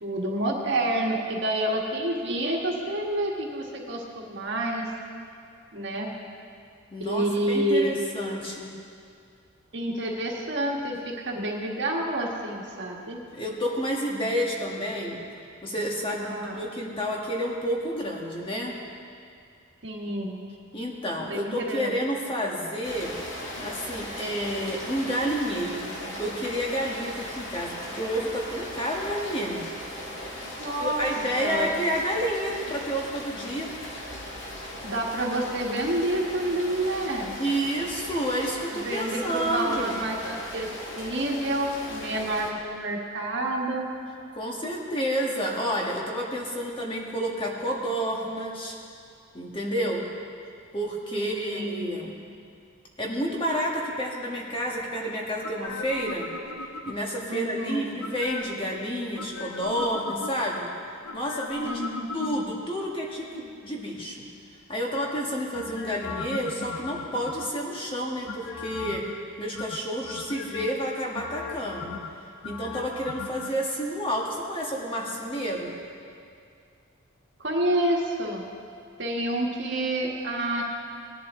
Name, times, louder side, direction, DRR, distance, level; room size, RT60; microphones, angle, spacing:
voice 1, 0.0-4.9 5.7-6.1 7.0-8.0 9.7-13.2 16.2-16.6 19.8-20.4 21.3-22.0 30.6-31.0 31.4-31.7 34.8-37.4 38.8-43.9 51.1-52.0 57.3-58.0 61.6-62.3 77.4-78.4 79.0-80.6, right 1 dB, 55° right, -1 dB, 1.6 m, -28 dB
voice 2, 6.9-8.7 13.3-15.2 15.6-18.8 20.7-23.1 23.6-29.7 30.8-33.7 37.4-40.0 44.3-48.7 49.3-50.0 50.7-52.1 53.0-56.3 56.8-60.7 61.1-61.8 62.1-64.2 64.7-69.0 69.4-71.9 72.4-75.7, equal, 25° left, -2 dB, 1.4 m, -30 dB
Rain, 22.8-42.5, left 1 dB, 60° left, 1.9 m, -38 dB
sound 1, 55.4-57.2 58.0-58.7 59.1-60.6 61.0-62.7 65.5-67.7 68.3-69.2 69.6-70.7 71.1-73.5 73.8-73.9, left 4 dB, 85° left, 0.8 m, -38 dB
18.5 x 10.5 x 3.7 m, 2.3 s
head